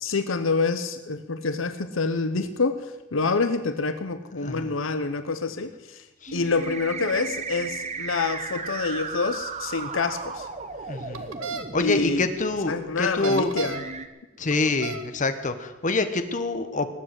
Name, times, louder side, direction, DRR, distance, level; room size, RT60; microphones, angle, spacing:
voice 1, 0.0-2.8 3.1-5.7 6.3-10.5 11.8-12.2 12.7-13.8, left 4 dB, 70° left, 10 dB, 0.8 m, -26 dB
voice 2, 4.4-4.8 6.2-6.3 10.9-11.3 11.7-13.5 14.4-16.9, left 3 dB, 40° left, 9 dB, 1.1 m, -26 dB
sound 1, 6.3-12.3 13.1-13.2 13.7-14.1, right 4 dB, 35° right, 1.0 m, -35 dB
sound 2, 11.1-11.6 13.1-13.9 14.5-15.1, right 5 dB, 85° right, 1.3 m, -33 dB
19.5 x 7.8 x 8.0 m, 1.1 s
head